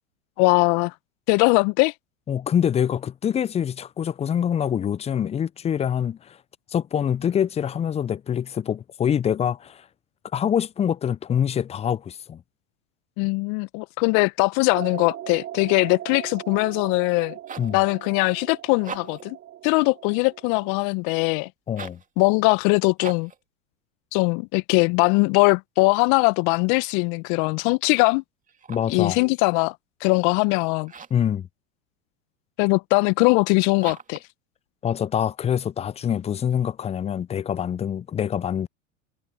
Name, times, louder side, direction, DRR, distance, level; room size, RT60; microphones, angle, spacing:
voice 1, 0.4-0.9 1.3-1.9 13.2-17.4 17.7-19.4 19.6-21.5 22.2-23.3 24.1-28.2 28.9-29.7 30.0-30.9 32.6-34.2, left 29 dB, 50° left, 1.1 m, -21 dB
voice 2, 2.3-6.4 6.7-9.8 10.3-12.4 17.6-17.8 21.7-22.0 28.7-29.2 31.1-31.5 34.8-38.7, left 9 dB, 15° left, 0.5 m, -25 dB
sound 1, 14.7-20.7, right 12 dB, 35° right, 3.4 m, -39 dB
sound 2, 17.2-17.8 18.7-19.3 21.7-22.1 23.0-23.4 28.4-29.0 30.8-31.3 33.8-34.3, right 6 dB, 20° right, 2.7 m, -40 dB
hypercardioid pair, 85°, 37 cm